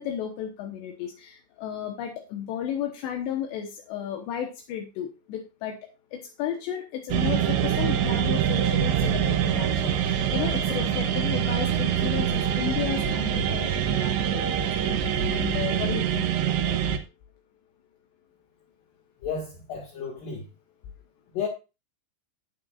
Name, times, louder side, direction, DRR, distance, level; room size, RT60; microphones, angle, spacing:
voice 1, 0.0-5.8 6.1-14.9 15.2-16.8, left 9 dB, 80° left, 3.3 m, -33 dB
sound 1, 7.1-17.0, right 9 dB, 85° right, 3.3 m, -25 dB
voice 2, 19.2-20.4 21.3-21.5, left 6 dB, 60° left, 3.2 m, -32 dB
11.5 x 9.1 x 2.5 m
omnidirectional pair, 5.0 m